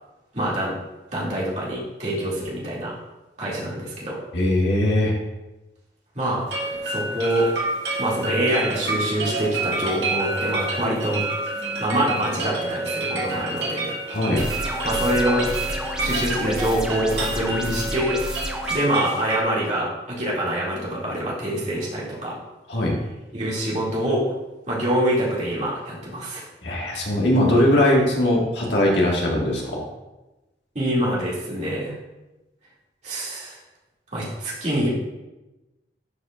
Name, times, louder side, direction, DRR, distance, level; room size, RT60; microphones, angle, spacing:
voice 1, 0.3-0.8 1.1-2.9 3.4-4.2 6.1-6.5 6.8-7.5 8.0-11.2 11.8-13.9 14.8-15.5 16.0-18.2 18.7-22.4 23.3-24.3 24.7-26.4 30.7-32.0 33.0-33.6 34.1-34.9, right 1 dB, 40° right, -7 dB, 2.3 m, -25 dB
voice 2, 4.3-5.1 14.1-14.4 17.5-17.8 22.7-23.0 26.6-29.8, left 1 dB, 85° left, -2 dB, 1.7 m, -20 dB
sound 1, 6.5-19.4, right 2 dB, 80° right, 2.1 m, -28 dB
sound 2, 14.4-18.7, equal, 5° right, 0.6 m, -31 dB
11.5 x 5.2 x 2.5 m, 1.1 s
head